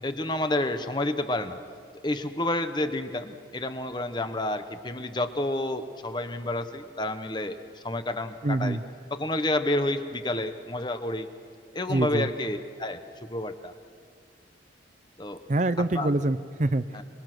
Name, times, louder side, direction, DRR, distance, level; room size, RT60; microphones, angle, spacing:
voice 1, 0.0-1.6 2.0-7.6 7.8-8.8 9.1-11.3 11.7-13.0 13.3-13.7 15.2-15.4 15.9-16.1 16.9-17.0, left 1 dB, 25° left, 9 dB, 1.0 m, -29 dB
voice 2, 8.4-8.8 11.9-12.3 15.5-16.8, right 2 dB, 40° right, 12 dB, 0.6 m, -25 dB
23.5 x 23.5 x 6.2 m, 2.1 s
head